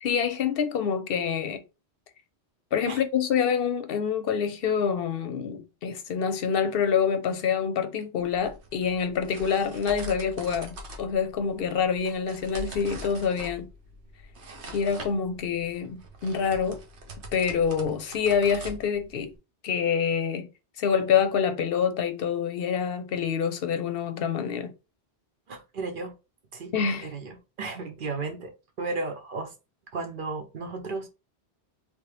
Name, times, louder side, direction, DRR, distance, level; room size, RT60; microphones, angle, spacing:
voice 1, 0.0-1.6 2.7-13.7 14.7-16.8 17.3-19.3 19.6-20.5 20.8-24.7 26.7-27.1, left 7 dB, 60° left, 0.8 m, -26 dB
sound 1, 8.2-19.4, equal, 80° right, 1.2 m, -43 dB
voice 2, 25.5-26.2 26.5-26.7 27.0-29.5 29.9-31.1, right 3 dB, 55° right, 0.8 m, -34 dB
3.4 x 2.8 x 3.2 m
omnidirectional pair, 1.1 m